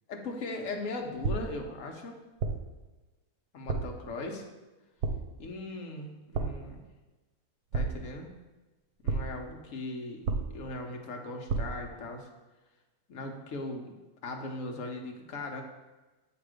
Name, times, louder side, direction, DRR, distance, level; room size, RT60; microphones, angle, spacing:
voice 1, 0.1-2.1 3.5-4.4 5.4-6.8 7.7-8.3 9.0-12.3 13.1-13.9 14.2-15.6, left 2 dB, 60° left, 2 dB, 1.1 m, -39 dB
sound 1, 1.2-1.7 2.4-2.8 3.7-4.1 5.0-5.5 6.3-6.8 7.7-8.3 9.1-9.5 10.3-10.8 11.5-11.9, right 4 dB, 80° right, 1.1 m, -32 dB
7.6 x 2.9 x 4.9 m, 1.1 s
omnidirectional pair, 1.6 m